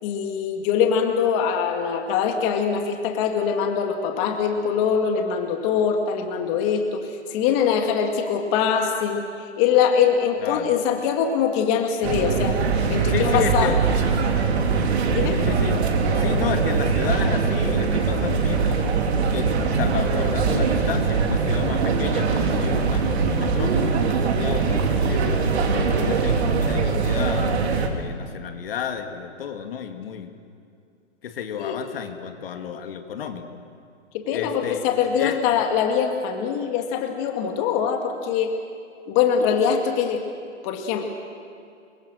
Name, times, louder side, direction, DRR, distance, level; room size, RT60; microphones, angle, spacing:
voice 1, 0.0-12.6 12.9-13.7 15.1-15.4 31.6-31.8 34.1-38.5 39.1-40.2 40.6-41.0, left 7 dB, 25° left, 3 dB, 2.1 m, -23 dB
sound 1, 12.0-27.9, right 5 dB, 60° right, 3.6 m, -22 dB
voice 2, 13.1-13.8 15.4-15.8 16.2-19.1 19.3-25.4 25.6-27.6 27.9-30.3 31.2-33.5 34.3-34.8 35.2-35.4, left 8 dB, 50° left, 6 dB, 2.2 m, -31 dB
28.0 x 24.0 x 6.3 m, 2.4 s
hypercardioid pair, 150°, 37 cm